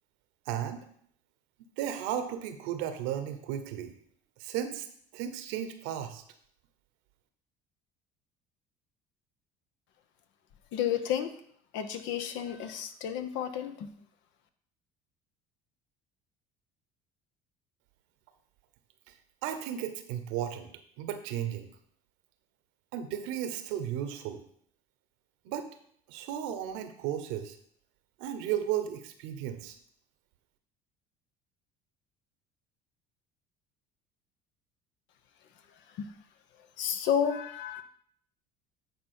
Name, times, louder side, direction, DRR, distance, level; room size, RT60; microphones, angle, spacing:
voice 1, 0.5-0.8 1.8-3.9 4.4-4.9 5.1-6.2 19.4-20.7 21.0-21.7 22.9-24.4 25.4-25.7 26.1-27.6 28.2-29.8, right 10 dB, 70° right, 9 dB, 1.0 m, -34 dB
voice 2, 10.7-11.3 11.7-13.9 35.9-36.1 36.8-37.8, left 9 dB, 65° left, 9 dB, 0.9 m, -31 dB
9.3 x 4.2 x 4.4 m, 0.64 s
hypercardioid pair, 70°, 21 cm